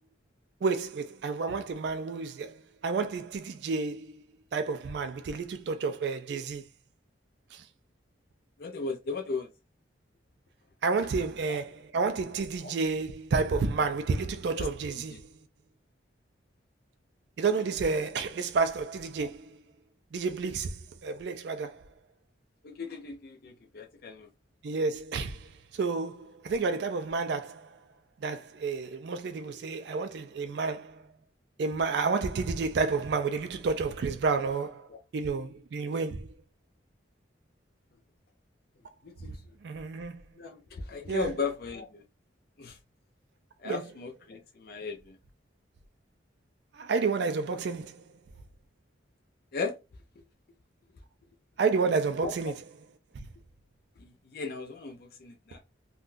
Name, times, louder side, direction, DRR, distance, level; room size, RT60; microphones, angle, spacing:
voice 1, 0.6-4.1 4.5-6.7 7.5-7.7 10.8-15.3 17.4-19.6 20.1-21.9 24.6-27.8 28.2-31.1 31.6-36.3 39.2-39.4 39.6-40.2 41.1-41.4 43.6-43.8 46.7-48.0 51.6-52.6 53.1-53.3, right 4 dB, 55° right, 0.3 m, -30 dB
voice 2, 8.6-9.5 11.5-11.6 14.6-14.7 15.1-15.2 22.6-24.3 34.9-35.0 39.0-39.4 40.4-42.0 42.6-42.8 43.6-45.2 49.5-49.7 52.2-52.3 54.0-55.6, left 4 dB, 50° left, 0.4 m, -36 dB
3.6 x 2.2 x 2.5 m
head